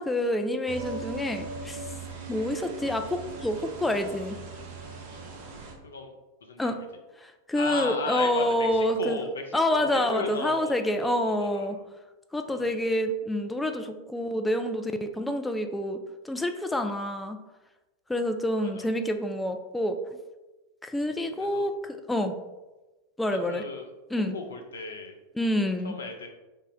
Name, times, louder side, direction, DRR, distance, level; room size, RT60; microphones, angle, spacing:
voice 1, 0.0-1.8 2.3-4.4 6.6-6.8 7.2-9.2 9.5-11.8 12.3-17.4 18.1-20.0 20.8-22.3 23.2-23.6 24.1-24.3 25.4-25.9, left 1 dB, 5° left, 6 dB, 0.3 m, -27 dB
sound 1, 0.7-5.7, right 3 dB, 45° right, 0.6 m, -39 dB
voice 2, 5.8-6.1 6.4-6.8 7.6-11.8 12.5-13.0 18.6-18.9 21.4-21.7 23.3-23.9 24.3-25.2 25.8-26.3, left 4 dB, 70° left, 3 dB, 0.5 m, -36 dB
3.5 x 2.1 x 3.8 m, 1.1 s
figure-of-eight pair, 90°, 0 cm